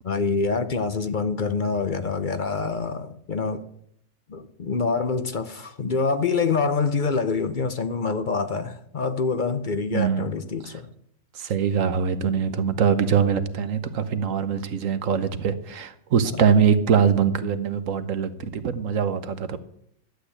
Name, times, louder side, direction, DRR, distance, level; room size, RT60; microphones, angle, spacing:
voice 1, 0.0-3.6 4.3-10.9 16.2-16.4, left 4 dB, 45° left, 0.8 m, -26 dB
voice 2, 9.9-10.3 11.4-19.6, right 7 dB, 85° right, 1.4 m, -23 dB
11.5 x 8.2 x 8.6 m
omnidirectional pair, 1.3 m